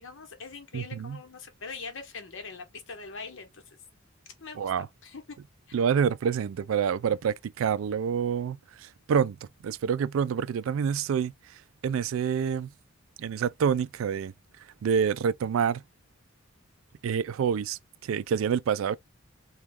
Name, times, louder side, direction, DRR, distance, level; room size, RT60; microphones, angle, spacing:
voice 1, 0.0-3.6 4.4-4.7 5.0-5.4 5.7-5.8, left 4 dB, 65° left, 0.9 m, -42 dB
voice 2, 0.7-1.2 4.6-4.9 5.7-12.7 13.2-14.3 14.8-15.8 17.0-19.0, right 7 dB, 70° right, 0.3 m, -27 dB
3.0 x 2.3 x 3.5 m
head